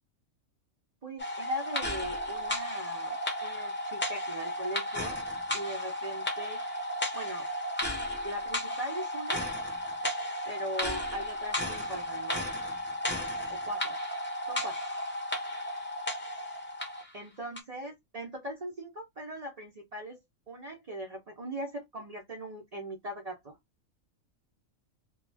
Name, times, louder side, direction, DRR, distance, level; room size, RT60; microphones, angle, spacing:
voice 1, 1.0-5.2 5.5-6.6 7.1-7.5 8.2-9.5 10.4-12.5 13.5-14.0 14.5-14.8 17.1-20.2 20.5-23.6, right 1 dB, 55° right, 0.4 m, -40 dB
sound 1, 1.2-17.1 17.5-17.6, left 1 dB, 15° left, 0.4 m, -34 dB
2.3 x 2.2 x 3.2 m
omnidirectional pair, 1.4 m